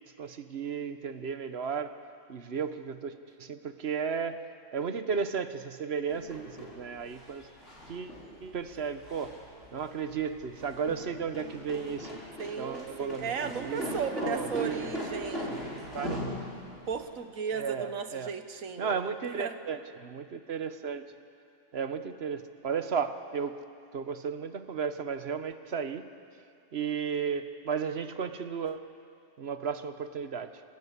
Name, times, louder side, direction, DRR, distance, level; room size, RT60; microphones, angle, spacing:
voice 1, 0.2-1.9 2.3-4.4 4.7-7.5 7.9-9.4 9.7-12.2 12.6-15.0 15.5-16.2 17.5-18.3 18.8-21.0 21.7-23.6 23.9-26.1 26.7-28.8 29.4-30.6, right 6 dB, 55° right, 10 dB, 1.2 m, -34 dB
sound 1, 6.1-17.0, left 1 dB, 65° left, 5.1 m, -40 dB
voice 2, 12.4-15.6 16.9-19.5, right 6 dB, 85° right, 9 dB, 1.6 m, -36 dB
27.5 x 16.5 x 8.2 m, 2.4 s
omnidirectional pair, 1.4 m